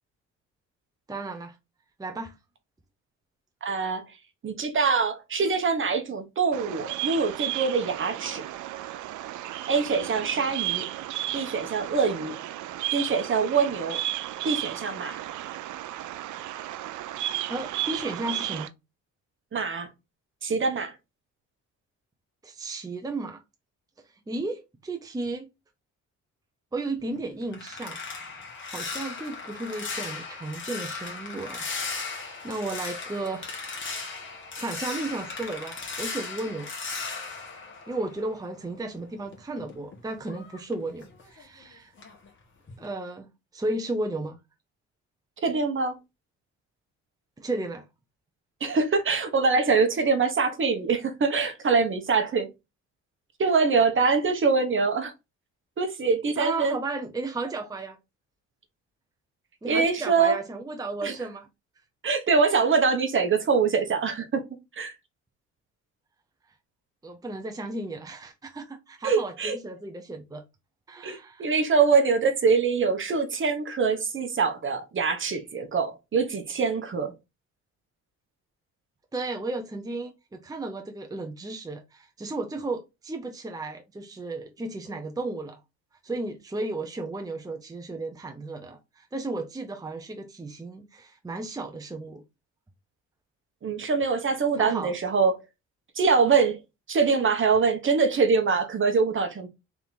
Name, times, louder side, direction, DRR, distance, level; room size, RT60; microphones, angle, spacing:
voice 1, 1.1-1.6 2.0-2.4 17.5-18.7 22.4-23.4 24.3-25.5 26.7-28.4 28.6-31.7 31.9-33.6 34.3-36.7 37.9-41.9 42.8-44.4 47.4-47.9 56.4-58.0 59.6-61.5 67.0-70.4 70.9-71.6 79.1-85.6 86.0-92.2 94.6-94.9, right 2 dB, 10° right, 0.7 m, -34 dB
voice 2, 3.6-4.0 4.4-8.4 9.7-10.8 11.3-12.3 12.9-14.0 14.4-15.2 19.5-19.9 20.4-20.9 45.4-46.0 48.6-52.5 53.4-55.1 55.8-56.8 59.6-60.4 61.0-61.1 62.0-64.4 64.8-64.9 69.0-69.5 71.0-77.1 93.6-95.4 96.0-96.6 96.9-99.5, right 5 dB, 40° right, 1.0 m, -24 dB
Bird vocalization bird call bird song, 6.5-18.7, right 14 dB, 80° right, 0.5 m, -34 dB
sound 1, 27.0-38.6 39.0-41.6 42.0-42.3 42.7-42.9, left 4 dB, 40° left, 1.5 m, -37 dB
3.5 x 2.8 x 4.0 m
cardioid pair, 90°, 30 cm